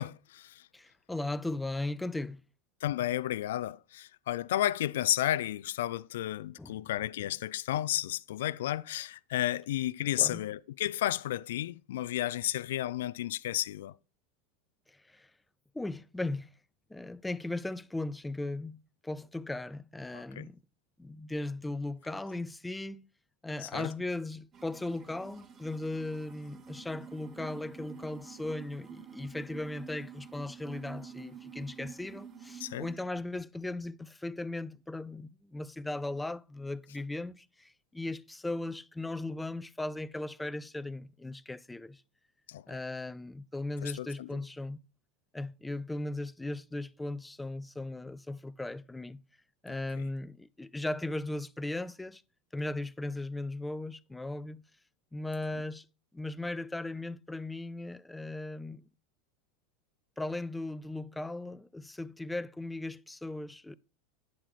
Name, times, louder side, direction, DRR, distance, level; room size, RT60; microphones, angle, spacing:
voice 1, 0.0-0.6 2.8-13.9 20.1-20.5 23.6-23.9 32.6-32.9 42.5-42.8 43.8-44.3, left 13 dB, 70° left, 0.4 m, -32 dB
voice 2, 0.7-2.4 6.6-6.8 10.2-10.4 14.9-15.3 15.7-16.5 16.9-20.6 21.0-23.1 23.4-42.0 42.7-44.8 45.3-49.2 49.6-52.2 52.5-54.6 55.1-55.9 56.1-58.8 60.2-63.8, left 2 dB, 10° left, 0.5 m, -37 dB
sound 1, 24.5-33.0, right 6 dB, 35° right, 1.2 m, -48 dB
10.0 x 7.7 x 3.1 m
hypercardioid pair, 90°, 0 cm